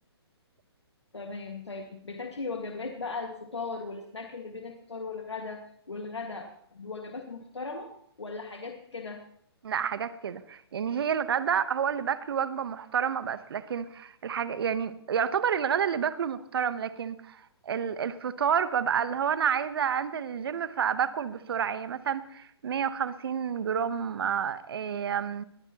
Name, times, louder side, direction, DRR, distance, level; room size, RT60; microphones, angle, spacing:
voice 1, 1.1-9.2, left 4 dB, 85° left, 4 dB, 1.9 m, -38 dB
voice 2, 9.6-25.4, right 8 dB, 60° right, 14 dB, 1.1 m, -29 dB
20.5 x 13.5 x 3.0 m, 0.68 s
hypercardioid pair, 135°, 14 cm